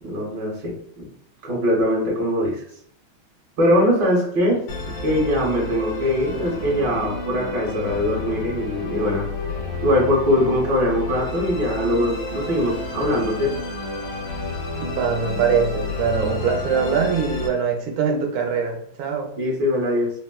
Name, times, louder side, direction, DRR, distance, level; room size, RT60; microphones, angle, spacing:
voice 1, 0.0-1.1 1.4-2.6 3.6-9.3 9.8-13.5 19.4-20.1, left 1 dB, 65° right, -4 dB, 1.5 m, -22 dB
Musical instrument, 4.7-17.5, left 2 dB, 80° left, 1.5 m, -31 dB
voice 2, 14.8-19.3, right 6 dB, 80° right, 2 dB, 1.5 m, -23 dB
4.0 x 2.0 x 2.2 m, 0.66 s
omnidirectional pair, 2.3 m